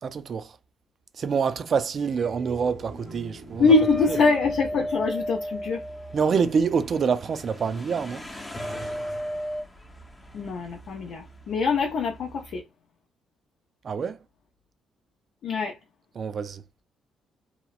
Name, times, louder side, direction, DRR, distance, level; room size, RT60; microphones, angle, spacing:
voice 1, 0.0-0.6 1.2-3.7 6.1-8.2 13.8-14.2 16.2-16.6, right 6 dB, 50° right, 0.3 m, -26 dB
sound 1, 2.0-6.0, right 2 dB, 85° right, 0.9 m, -44 dB
sound 2, 2.6-12.6, equal, 15° left, 0.5 m, -46 dB
voice 2, 3.6-5.8 10.3-12.6 15.4-15.8, left 4 dB, 70° left, 0.5 m, -23 dB
sound 3, 3.7-6.7 8.5-9.6, equal, 35° left, 0.9 m, -32 dB
2.8 x 2.0 x 2.3 m
cardioid pair, 90°, 0 cm